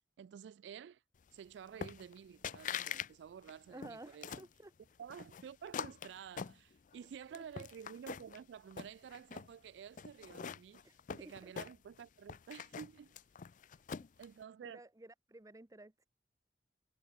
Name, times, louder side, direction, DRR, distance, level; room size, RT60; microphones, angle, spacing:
voice 1, 0.2-1.0 1.3-4.4 5.0-13.2 14.2-14.8, right 8 dB, 85° right, 0.3 m, -51 dB
sound 1, 1.8-2.2 2.4-3.1 3.4-4.5 5.1-7.0 7.3-8.4 8.7-9.5 10.0-12.0 12.3-14.2, left 7 dB, 50° left, 0.5 m, -44 dB
voice 2, 3.7-4.7 7.3-7.7 10.8-11.5 13.7-14.0 14.6-16.1, right 1 dB, 20° right, 0.8 m, -54 dB
head